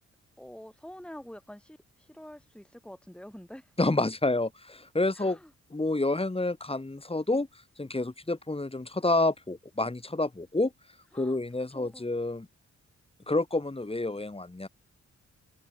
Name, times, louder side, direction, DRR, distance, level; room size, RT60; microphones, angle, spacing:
voice 1, 0.4-3.7 5.2-5.5 11.1-11.4 11.7-12.1, equal, 5° left, 3.6 m, -47 dB
voice 2, 3.8-5.4 5.7-7.5 7.8-10.7 11.1-12.5 13.3-14.7, left 2 dB, 20° left, 4.4 m, -28 dB
open air
cardioid pair, 95°, 30 cm